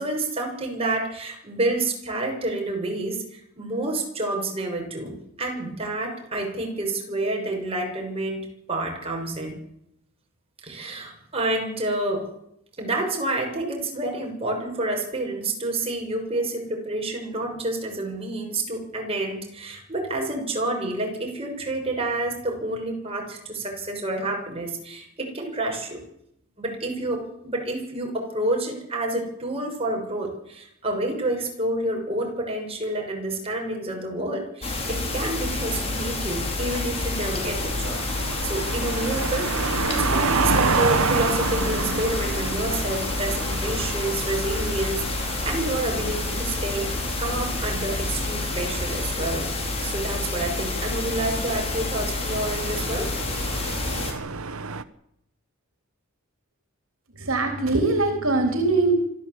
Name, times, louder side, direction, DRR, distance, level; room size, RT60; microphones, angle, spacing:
voice 1, 0.0-5.1 5.4-9.6 10.6-12.3 12.8-26.0 26.6-38.0 38.4-46.9 47.2-49.5 49.8-53.1, right 2 dB, 25° right, 1 dB, 6.6 m, -29 dB
sound 1, 34.6-54.1, left 2 dB, 30° left, 4.6 m, -28 dB
sound 2, 36.4-54.8, right 4 dB, 90° right, 1.2 m, -30 dB
voice 2, 57.2-58.9, right 3 dB, 70° right, 4 dB, 3.5 m, -22 dB
25.5 x 14.0 x 8.4 m, 0.77 s
head